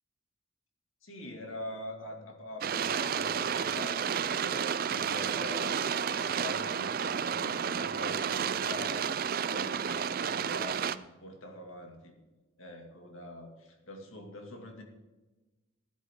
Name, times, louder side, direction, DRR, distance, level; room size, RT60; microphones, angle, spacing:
voice 1, 1.0-5.8 6.1-9.1 9.5-12.2 12.6-14.8, left 1 dB, 90° left, 3 dB, 2.3 m, -44 dB
sound 1, 2.6-11.0, right 7 dB, 45° right, 0.4 m, -31 dB
15.5 x 11.5 x 3.7 m, 1.2 s
head